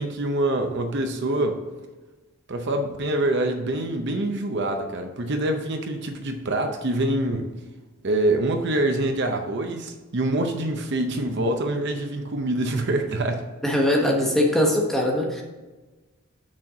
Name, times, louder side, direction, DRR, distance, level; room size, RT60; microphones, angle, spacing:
voice 1, 0.0-1.6 2.5-7.5 8.0-13.5, right 1 dB, 55° right, 5 dB, 0.6 m, -25 dB
voice 2, 13.6-15.4, left 1 dB, ahead, -1 dB, 1.0 m, -21 dB
6.3 x 4.4 x 6.1 m, 1.2 s
head